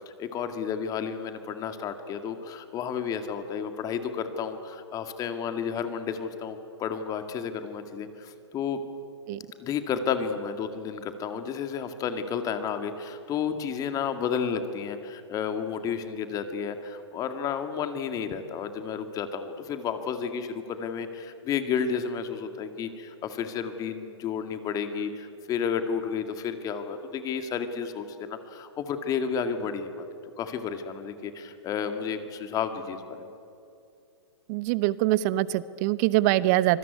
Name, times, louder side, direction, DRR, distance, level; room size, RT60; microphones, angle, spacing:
voice 1, 0.2-8.8 9.6-30.0 30.4-33.3, left 7 dB, 25° left, 8 dB, 2.0 m, -32 dB
voice 2, 34.5-36.8, right 16 dB, 40° right, 17 dB, 1.0 m, -24 dB
25.5 x 21.0 x 9.6 m, 2.6 s
figure-of-eight pair, 120°, 15 cm